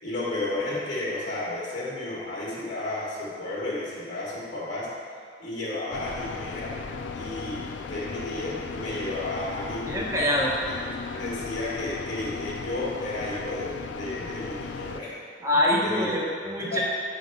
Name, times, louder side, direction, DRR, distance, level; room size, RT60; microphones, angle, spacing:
voice 1, 0.0-4.9 5.4-6.8 7.1-9.8 10.7-10.8 11.1-15.2 15.8-16.1 16.6-16.8, left 2 dB, 60° left, -9 dB, 1.6 m, -32 dB
sound 1, 5.9-15.0, left 4 dB, 80° left, 0.4 m, -36 dB
voice 2, 9.9-10.5 15.4-16.8, left 1 dB, 15° right, -4 dB, 1.1 m, -24 dB
8.6 x 4.0 x 4.7 m, 2.1 s
head